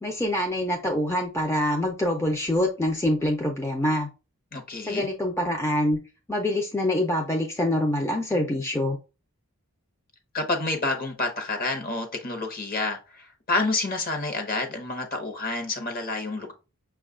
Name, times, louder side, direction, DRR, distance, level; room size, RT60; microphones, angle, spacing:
voice 1, 0.0-4.1 4.8-6.0 6.3-9.0, left 1 dB, 10° left, 0.4 m, -25 dB
voice 2, 4.5-5.1 10.3-16.5, left 3 dB, 40° left, 0.9 m, -29 dB
5.9 x 2.3 x 3.6 m
head